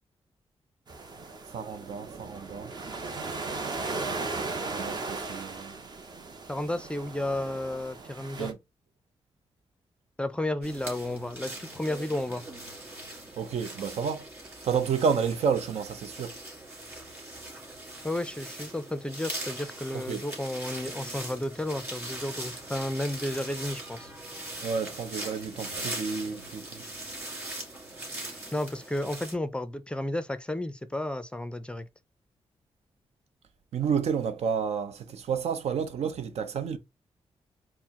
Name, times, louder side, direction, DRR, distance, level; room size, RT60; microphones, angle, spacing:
sound 1, 0.9-8.5, right 3 dB, 40° right, 0.7 m, -37 dB
voice 1, 1.5-2.7 4.6-5.8 8.4-8.6 13.4-14.3 14.6-16.4 19.9-20.2 24.6-26.8 33.7-36.8, right 6 dB, 75° right, 0.6 m, -30 dB
voice 2, 6.5-8.5 10.2-12.4 18.0-24.1 28.5-31.9, left 1 dB, 10° left, 0.4 m, -32 dB
sound 2, 10.6-29.3, right 1 dB, 20° right, 2.3 m, -40 dB
4.4 x 2.0 x 3.6 m
cardioid pair, 105°, 11 cm